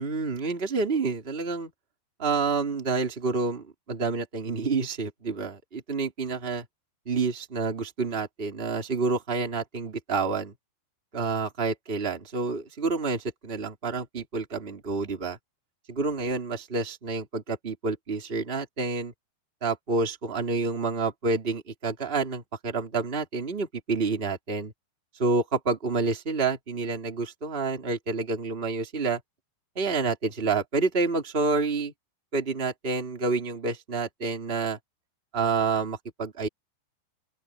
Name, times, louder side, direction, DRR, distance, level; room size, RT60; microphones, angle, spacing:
voice 1, 0.0-1.7 2.2-6.6 7.0-10.5 11.1-15.4 15.9-19.1 19.6-24.7 25.2-29.2 29.7-31.9 32.3-34.8 35.3-36.5, right 4 dB, 15° right, 2.9 m, -28 dB
open air
omnidirectional pair, 5.1 m